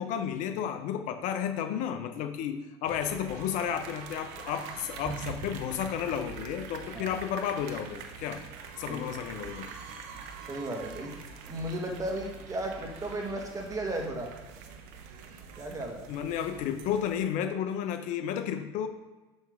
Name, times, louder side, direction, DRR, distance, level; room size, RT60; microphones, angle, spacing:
voice 1, 0.0-8.4 8.8-9.8 16.1-18.9, left 9 dB, 60° left, 8 dB, 0.8 m, -32 dB
sound 1, 2.8-17.2, right 5 dB, 70° right, 1.0 m, -44 dB
voice 2, 10.5-11.1 11.5-14.3 15.6-16.1, right 1 dB, 25° right, 2 dB, 1.8 m, -35 dB
7.1 x 5.4 x 3.6 m, 1.1 s
hypercardioid pair, 85°, 14 cm